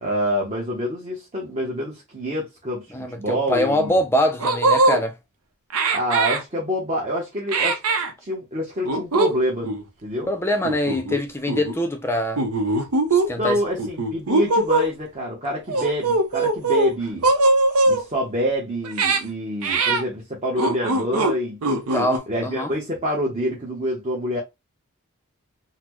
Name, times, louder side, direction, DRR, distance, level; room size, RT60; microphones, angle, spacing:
voice 1, 0.0-2.8 3.1-4.0 5.9-7.8 8.2-9.7 10.0-10.3 13.4-17.3 17.9-21.6 22.3-24.4, equal, 30° right, 0.9 m, -26 dB
voice 2, 2.9-5.1 10.3-12.4 13.1-13.6 21.9-22.7, left 1 dB, 10° left, 0.5 m, -23 dB
sound 1, 3.9-4.0 4.4-5.0 5.7-6.4 7.5-8.1 8.8-9.3 9.6-9.8 10.6-11.2 11.5-11.7 12.4-13.3 13.8-14.9 15.7-16.9 17.2-18.0 18.8-19.2 19.6-20.0 20.6-21.3 21.6-22.2, right 2 dB, 85° right, 0.7 m, -20 dB
4.0 x 2.0 x 3.0 m
head